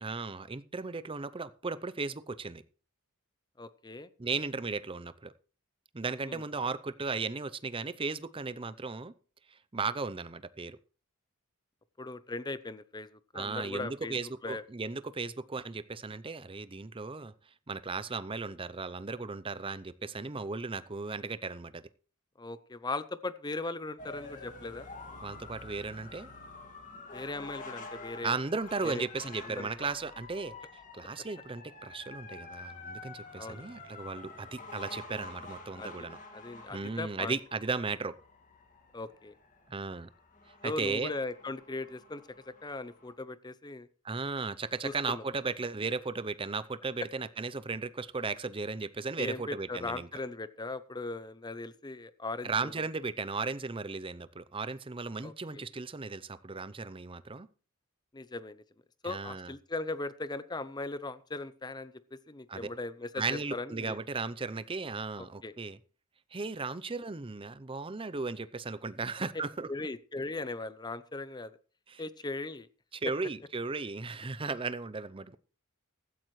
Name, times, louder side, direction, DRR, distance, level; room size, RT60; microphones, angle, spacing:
voice 1, 0.0-2.6 4.2-5.3 5.9-9.1 9.5-10.8 13.3-17.3 17.7-21.8 25.2-26.3 28.2-30.5 30.9-36.2 36.7-38.2 39.7-40.1 40.6-41.1 44.0-50.1 52.4-57.5 59.0-59.5 62.5-62.7 63.1-65.8 66.3-69.7 71.9-72.0 72.9-75.4, right 4 dB, 25° right, 0.6 m, -36 dB
voice 2, 3.6-4.1 6.2-6.4 12.0-14.2 14.4-14.6 22.4-24.9 27.1-28.3 28.8-29.0 29.4-29.7 33.4-33.7 35.8-36.1 36.3-37.4 38.9-39.3 40.6-43.9 44.8-45.2 49.2-52.7 55.2-55.7 58.1-58.6 59.0-64.0 65.2-65.5 69.7-71.5 72.0-72.7, left 2 dB, 20° left, 0.7 m, -39 dB
sound 1, 24.0-43.1, left 3 dB, 35° left, 2.1 m, -48 dB
15.5 x 13.5 x 3.2 m
head